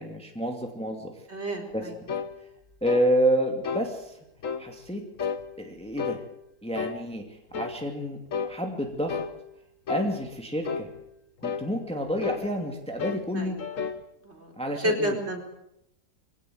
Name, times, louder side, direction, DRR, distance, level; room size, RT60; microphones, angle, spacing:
voice 1, 0.0-1.2 1.7-1.9 2.8-4.2 4.6-5.0 5.6-6.2 6.6-9.2 9.9-10.9 11.4-13.6 14.6-15.2, equal, 5° left, 2 dB, 2.5 m, -29 dB
voice 2, 1.3-1.9 13.3-13.5 14.2-14.5 14.8-15.4, equal, 40° right, 1 dB, 4.8 m, -30 dB
sound 1, 2.1-2.3 2.9-3.1 3.6-3.9 4.4-4.7 5.2-5.4 6.0-6.2 6.7-7.0 7.5-7.8 8.3-8.5 9.1-9.4 9.9-10.1 10.6-10.9 11.4-11.7 12.2-12.5 13.0-13.3 13.6-14.0, left 6 dB, 55° left, 1.6 m, -31 dB
23.0 x 17.5 x 8.0 m, 0.79 s
omnidirectional pair, 1.7 m